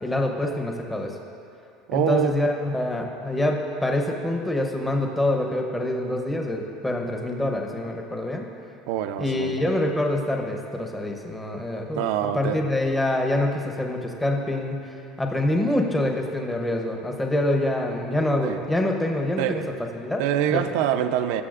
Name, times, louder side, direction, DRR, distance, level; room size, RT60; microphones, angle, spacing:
voice 1, 0.0-1.1 1.9-8.5 9.2-12.0 12.3-14.8 15.2-19.6 20.0-20.2 20.5-20.6, left 1 dB, 10° left, 2 dB, 0.8 m, -25 dB
voice 2, 1.9-2.3 8.9-9.5 12.0-12.6 18.4-18.6 19.4-19.7 20.2-21.4, right 10 dB, 75° right, 9 dB, 0.5 m, -25 dB
18.0 x 6.8 x 2.4 m, 2.8 s
cardioid pair, 150°, 0 cm